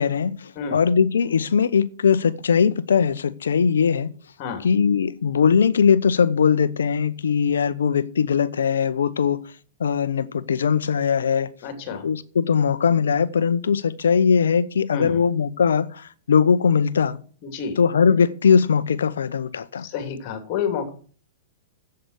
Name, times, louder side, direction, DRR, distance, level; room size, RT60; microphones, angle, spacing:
voice 1, 0.0-4.1 4.6-9.4 9.8-11.5 12.0-17.2 17.8-19.9, left 6 dB, 80° left, 0.7 m, -20 dB
voice 2, 11.6-12.1 14.9-15.2 17.4-17.8 19.8-20.9, left 6 dB, 45° left, 3.1 m, -29 dB
8.0 x 7.9 x 8.1 m
hypercardioid pair, 115°, 0 cm